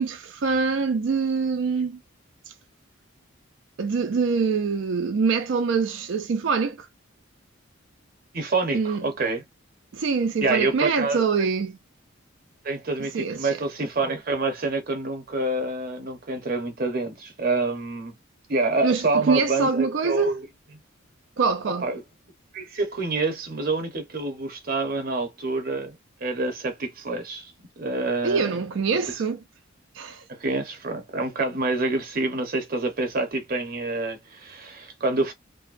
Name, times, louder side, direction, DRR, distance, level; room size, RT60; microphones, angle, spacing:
voice 1, 0.0-2.0 3.8-6.9 8.7-9.0 9.9-11.8 13.1-13.6 18.8-20.3 21.4-21.9 28.2-29.4 30.0-30.2, right 5 dB, 60° right, 0.4 m, -24 dB
voice 2, 8.3-9.4 10.4-11.2 12.6-18.1 18.5-20.5 21.8-22.0 22.5-27.5 27.8-28.6 29.1-29.2 30.3-35.3, right 3 dB, 45° right, 0.8 m, -27 dB
2.6 x 2.2 x 2.4 m
head